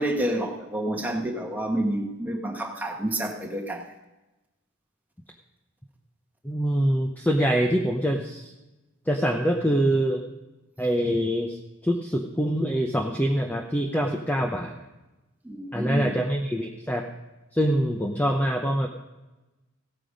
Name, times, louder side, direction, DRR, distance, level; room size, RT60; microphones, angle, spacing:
voice 1, 0.0-3.9 15.4-16.2, right 1 dB, 10° right, 1 dB, 1.5 m, -29 dB
voice 2, 6.4-8.5 9.1-10.2 10.8-11.6 11.8-14.8 15.7-17.1 17.5-18.9, equal, 5° left, 2 dB, 0.7 m, -24 dB
16.0 x 9.1 x 5.2 m, 1.1 s
head